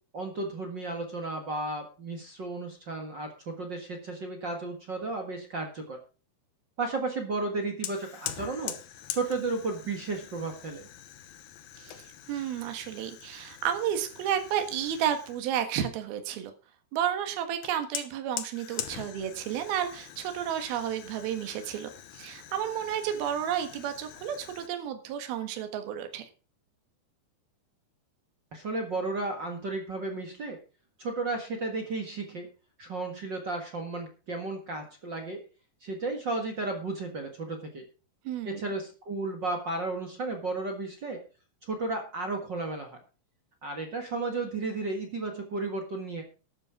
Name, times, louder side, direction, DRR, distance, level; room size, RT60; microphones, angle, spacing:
voice 1, 0.1-6.0 6.8-8.8 9.1-10.9 28.5-30.6 31.0-32.5 32.8-35.4 35.8-37.8 38.4-41.2 41.6-43.0 43.6-46.2, right 3 dB, 45° right, 3 dB, 1.4 m, -33 dB
Fire, 7.8-15.5 17.6-24.7, left 11 dB, 75° left, 2.7 m, -43 dB
voice 2, 12.3-16.5 16.9-26.3 38.2-38.6, right 9 dB, 70° right, 7 dB, 3.3 m, -32 dB
12.5 x 9.7 x 4.8 m, 0.35 s
omnidirectional pair, 4.6 m